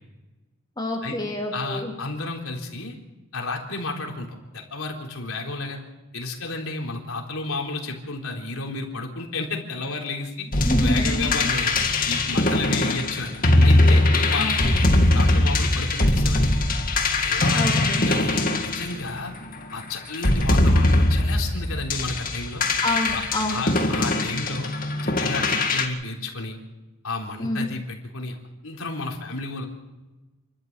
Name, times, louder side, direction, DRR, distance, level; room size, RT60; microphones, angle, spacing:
voice 1, 0.8-1.9 10.6-11.4 14.3-14.7 17.5-18.0 22.8-23.6 27.4-27.7, left 1 dB, 20° left, 0 dB, 2.7 m, -27 dB
voice 2, 1.5-3.0 3.3-5.8 6.1-10.5 10.8-11.7 12.0-14.8 15.1-16.6 17.2-17.8 18.0-19.3 19.7-22.6 23.5-24.7 25.0-26.6 27.0-28.4 28.6-29.7, left 3 dB, 75° left, 0 dB, 3.8 m, -32 dB
sound 1, 10.5-19.5 20.1-25.8, left 2 dB, 40° left, 2.1 m, -21 dB
29.0 x 12.5 x 7.4 m, 1.1 s
head